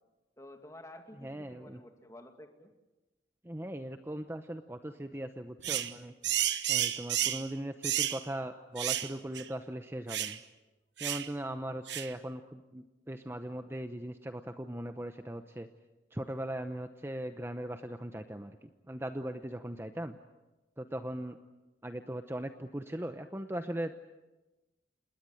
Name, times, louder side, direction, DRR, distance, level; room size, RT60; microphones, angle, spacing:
voice 1, 0.4-2.7, left 1 dB, 20° left, 5 dB, 2.4 m, -51 dB
voice 2, 1.2-1.8 3.4-6.1 6.7-10.4 11.0-15.7 16.1-20.2 20.8-21.4 21.8-23.9, right 1 dB, 15° right, 8 dB, 0.8 m, -39 dB
sound 1, 5.6-5.9 6.2-7.5 7.8-8.2 8.8-9.1 9.4-9.5 10.1-10.4 11.0-11.3 11.9-12.1, right 11 dB, 80° right, 1.2 m, -31 dB
28.0 x 20.5 x 7.8 m, 1.1 s
head